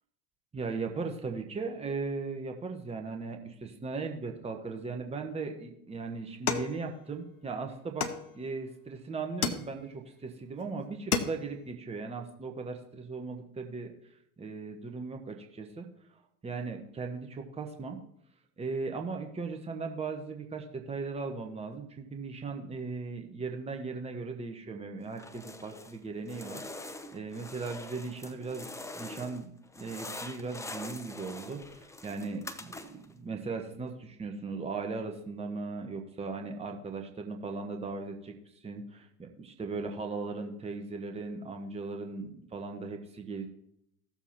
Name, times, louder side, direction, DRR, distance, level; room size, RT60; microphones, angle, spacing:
voice 1, 0.5-8.1 8.3-13.9 14.4-15.9 16.4-18.0 18.6-26.6 27.1-38.3 38.6-43.5, right 4 dB, 15° right, 4 dB, 1.1 m, -38 dB
sound 1, 6.5-7.4 8.0-8.7 9.4-10.1 10.6-10.7 10.9-11.7, left 6 dB, 90° left, 0.9 m, -33 dB
sound 2, 25.1-26.0 26.3-29.4 29.7-33.1, left 2 dB, 5° left, 0.6 m, -44 dB
16.0 x 7.1 x 2.9 m, 0.75 s
hypercardioid pair, 80°, 44 cm